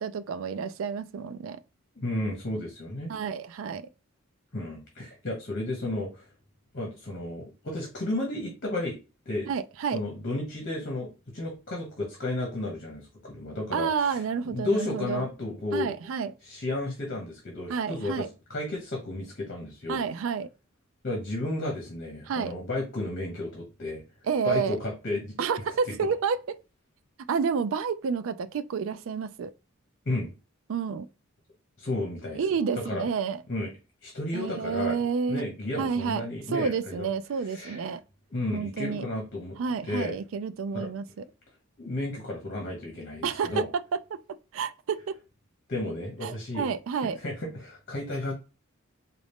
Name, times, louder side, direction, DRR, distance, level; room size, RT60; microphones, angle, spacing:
voice 1, 0.0-1.6 3.1-3.9 9.5-10.0 13.7-15.2 15.7-16.3 17.7-18.3 19.9-20.5 22.3-22.5 24.3-24.8 25.4-26.4 27.3-29.5 30.7-31.1 32.4-33.4 34.3-35.4 35.8-38.0 38.5-39.0 39.6-41.1 43.2-43.6 44.5-45.1 46.2-47.2, right 6 dB, 70° right, 0.4 m, -29 dB
voice 2, 1.9-3.1 4.5-6.3 6.7-9.0 9.2-9.5 9.9-15.9 16.4-18.2 18.5-20.0 21.0-24.0 24.4-25.4 25.9-26.1 30.0-30.3 31.8-32.4 32.7-33.0 33.5-33.7 34.0-35.0 35.3-37.1 37.5-37.9 38.3-39.6 39.9-40.2 40.7-40.9 41.8-43.7 45.7-46.7 47.2-48.3, left 2 dB, 50° left, 1.2 m, -33 dB
4.0 x 2.5 x 3.4 m
head